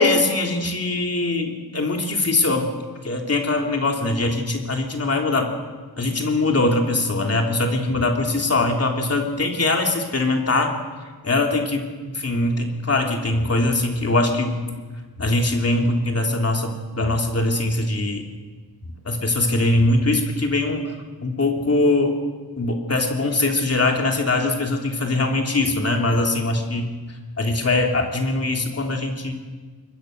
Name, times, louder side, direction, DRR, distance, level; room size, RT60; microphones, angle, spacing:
voice 1, 0.0-2.7 3.0-5.5 6.0-10.7 11.2-11.9 12.1-14.6 15.2-18.2 19.0-20.9 21.2-22.1 22.6-26.9 27.4-29.3, left 2 dB, 40° left, 2 dB, 3.2 m, -22 dB
26.0 x 22.0 x 6.7 m, 1.4 s
wide cardioid pair, 145°, 38 cm